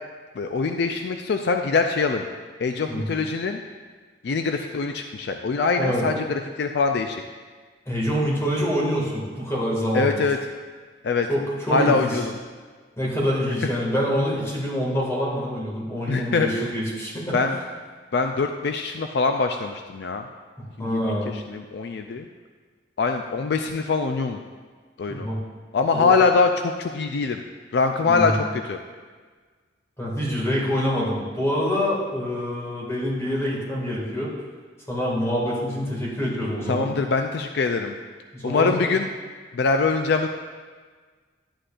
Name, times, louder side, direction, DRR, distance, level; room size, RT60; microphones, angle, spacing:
voice 1, 0.3-2.3 2.6-3.6 4.2-7.2 9.9-10.4 11.0-11.3 11.7-12.3 16.1-16.7 17.3-17.6 18.1-20.3 20.8-22.3 23.0-24.4 25.0-25.3 25.7-27.4 27.7-28.8 36.7-38.0 38.4-39.1 39.5-40.3, left 4 dB, 60° left, 5 dB, 0.4 m, -23 dB
voice 2, 7.9-10.1 11.3-12.1 13.0-17.4 20.8-21.3 25.1-25.4 25.9-26.1 28.1-28.3 30.0-34.3 34.9-36.9 38.3-38.8, equal, 15° left, -5 dB, 2.1 m, -26 dB
11.0 x 8.8 x 2.5 m, 1.5 s
head